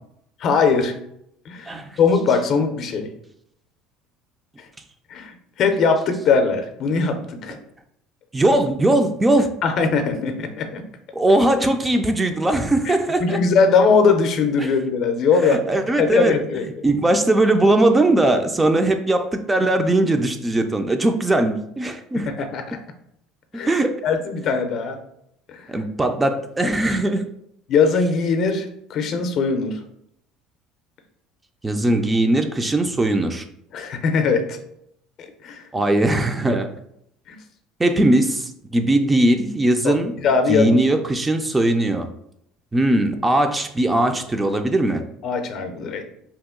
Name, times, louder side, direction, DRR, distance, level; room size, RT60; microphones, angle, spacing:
voice 1, 0.4-1.0 1.5-1.7 2.0-3.1 5.1-7.6 9.6-10.8 12.9-13.0 13.2-15.6 16.0-16.8 22.3-22.8 23.5-23.7 24.0-25.0 25.5-25.7 27.7-29.8 33.7-34.6 35.2-35.6 37.3-37.4 39.8-40.0 40.2-40.8 45.2-46.0, left 5 dB, 55° left, 7 dB, 0.5 m, -20 dB
voice 2, 1.7-2.0 8.3-9.5 11.1-13.4 14.6-14.7 15.4-16.4 16.8-22.3 23.5-24.0 25.7-27.2 31.6-33.4 35.7-36.7 37.8-40.1 40.5-42.1 42.7-45.0, right 1 dB, 15° right, 7 dB, 0.3 m, -19 dB
2.8 x 2.2 x 3.6 m, 0.75 s
supercardioid pair, 85°, 0 cm